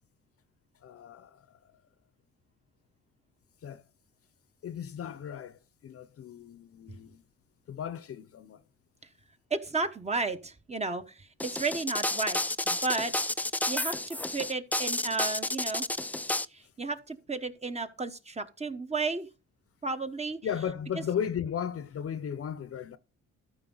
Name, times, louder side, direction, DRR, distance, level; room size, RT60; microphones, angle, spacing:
voice 1, 0.8-1.7 3.6-3.8 4.6-7.2 7.7-8.6 20.4-23.0, left 8 dB, 50° left, 0.8 m, -36 dB
voice 2, 9.5-12.4 12.7-13.1 13.7-15.9 16.5-19.3 19.8-20.4, right 3 dB, 20° right, 1.1 m, -33 dB
sound 1, 11.4-16.4, left 1 dB, 5° left, 0.3 m, -31 dB
13.5 x 5.2 x 3.9 m
cardioid pair, 90°, 30 cm